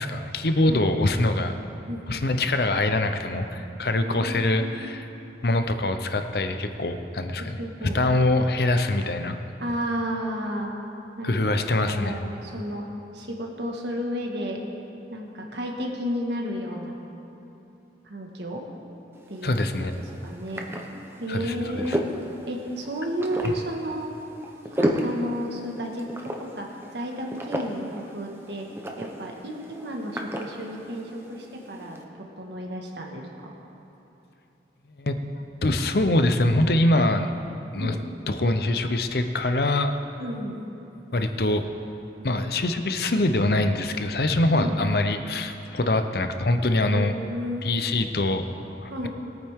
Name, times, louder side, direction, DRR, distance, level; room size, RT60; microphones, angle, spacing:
voice 1, 0.0-1.5 2.1-5.0 5.4-7.6 7.9-9.4 11.2-12.2 19.4-19.9 21.3-22.0 35.0-35.2 35.6-37.3 37.7-37.9 38.3-39.9 41.1-41.6 42.2-47.1 47.6-49.1, left 2 dB, 60° left, 7 dB, 0.7 m, -24 dB
voice 2, 4.0-4.8 7.4-8.0 9.6-10.7 11.2-12.8 13.1-14.6 15.1-16.9 18.0-18.6 19.3-19.5 19.8-20.6 21.2-22.0 22.4-24.1 24.7-28.6 29.0-33.5 37.7-38.0 40.2-40.6 44.5-44.8 46.9-47.7 48.9-49.1, equal, 75° right, 0 dB, 1.7 m, -32 dB
sound 1, 19.1-32.0, equal, 15° right, 0.8 m, -34 dB
21.0 x 9.2 x 3.7 m, 2.9 s
head